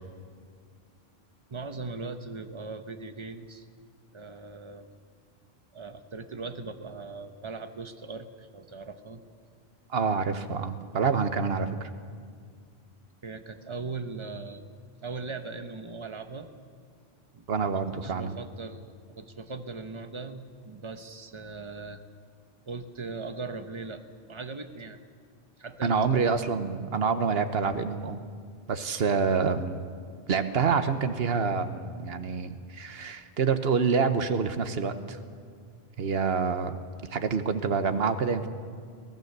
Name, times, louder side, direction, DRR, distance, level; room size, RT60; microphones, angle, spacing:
voice 1, 1.5-3.7 4.1-4.9 5.7-9.2 13.2-14.7 15.0-16.5 17.3-17.4 18.0-22.0 22.7-25.0 25.6-26.3, right 3 dB, 30° right, 8 dB, 1.0 m, -39 dB
voice 2, 9.9-11.9 17.5-18.4 25.8-28.2 28.7-29.8 30.3-35.2 36.0-36.8 37.1-38.5, right 5 dB, 70° right, 9 dB, 1.3 m, -27 dB
24.0 x 17.5 x 6.7 m, 2.1 s
omnidirectional pair, 1.1 m